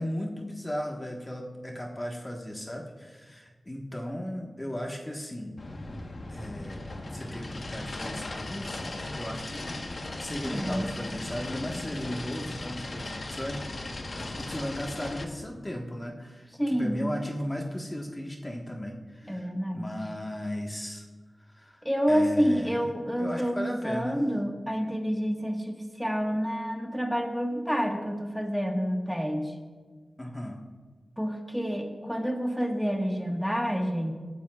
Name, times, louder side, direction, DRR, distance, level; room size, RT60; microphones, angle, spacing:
voice 1, 0.0-5.6 6.3-6.8 7.1-9.8 10.2-13.7 14.1-21.0 21.5-22.9 23.2-24.2 30.2-30.6, equal, 20° left, 0 dB, 1.5 m, -36 dB
sound 1, 5.6-15.2, left 2 dB, 55° left, 1.3 m, -37 dB
voice 2, 10.3-10.9 16.6-17.1 19.3-19.9 21.8-29.5 31.2-34.1, equal, ahead, 2 dB, 1.6 m, -28 dB
18.5 x 12.5 x 2.5 m, 1.4 s
wide cardioid pair, 65°, 0 cm